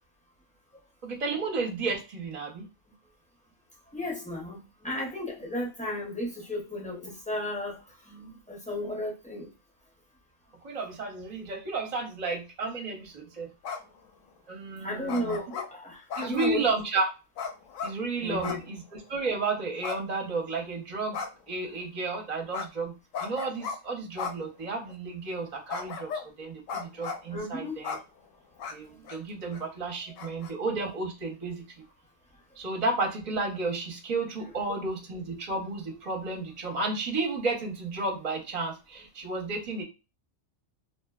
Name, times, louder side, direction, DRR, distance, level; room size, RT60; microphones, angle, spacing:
voice 1, 1.0-2.7 10.6-13.5 14.5-15.4 16.2-17.1 17.8-21.2 21.5-22.9 23.2-26.1 26.4-28.0 28.7-31.6 32.6-39.8, right 3 dB, 40° right, 0 dB, 0.6 m, -32 dB
voice 2, 3.9-9.5 14.7-16.6 18.2-18.6 27.3-27.8 28.9-29.0, left 1 dB, 10° left, -3 dB, 0.5 m, -34 dB
sound 1, 13.6-14.0 15.1-15.7 16.1-16.6 17.4-17.9 18.4-18.7 19.0-19.1 19.8-20.5 21.1-21.5 22.5-22.7 23.1-23.8 24.2-24.3 24.9-25.0 25.7-26.3 26.7-27.3 27.8-28.0 28.6-28.7 29.1-29.2 29.5-29.6 30.2-30.5, left 5 dB, 85° left, 1.0 m, -35 dB
2.8 x 2.1 x 2.2 m, 0.29 s
omnidirectional pair, 1.3 m